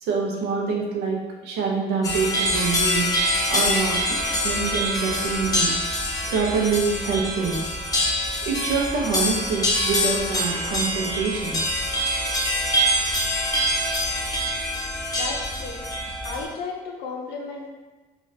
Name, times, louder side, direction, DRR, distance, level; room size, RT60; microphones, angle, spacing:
voice 1, 0.0-3.1 3.5-4.2 4.4-5.8 6.3-7.7 8.4-11.6, right 5 dB, 90° right, 0 dB, 0.7 m, -25 dB
sound 1, 2.0-16.4, left 1 dB, 20° left, 0.8 m, -25 dB
voice 2, 15.2-15.8 16.2-17.7, left 4 dB, 80° left, 0 dB, 0.5 m, -34 dB
4.0 x 2.4 x 2.6 m, 1.3 s
cardioid pair, 110°, 17 cm